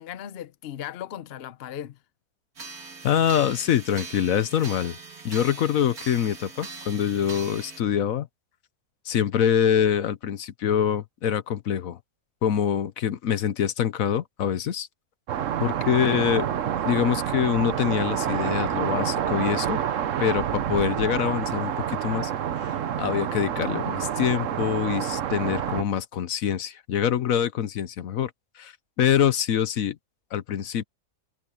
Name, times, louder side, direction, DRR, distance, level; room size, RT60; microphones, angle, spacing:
voice 1, 0.0-2.0 16.0-16.3, left 10 dB, 50° left, 0.8 m, -37 dB
sound 1, 2.6-7.8, right 4 dB, 90° right, 3.3 m, -41 dB
voice 2, 3.0-5.0 5.2-8.3 9.1-12.0 12.4-14.9 15.6-16.5 16.8-19.8 20.2-22.3 22.6-28.3 28.6-30.0 30.3-30.8, left 9 dB, 70° left, 1.2 m, -25 dB
sound 2, 15.3-25.8, right 9 dB, 60° right, 1.2 m, -28 dB
omnidirectional pair, 1.5 m